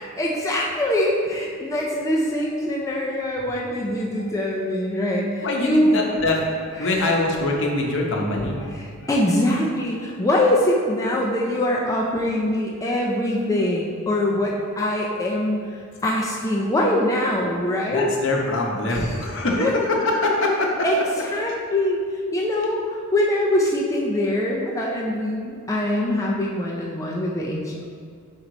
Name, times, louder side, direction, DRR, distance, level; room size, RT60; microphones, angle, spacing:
voice 1, 0.0-5.9 6.8-6.9 9.1-18.1 18.9-19.3 19.6-19.7 20.8-21.0 21.3-22.0 22.3-27.8, left 1 dB, 15° left, -3 dB, 0.4 m, -23 dB
voice 2, 5.4-8.7 9.0-9.1 12.8-12.9 14.4-14.5 15.1-15.2 17.9-20.7, left 2 dB, 60° left, 0 dB, 0.8 m, -24 dB
5.3 x 4.6 x 3.9 m, 2.1 s
head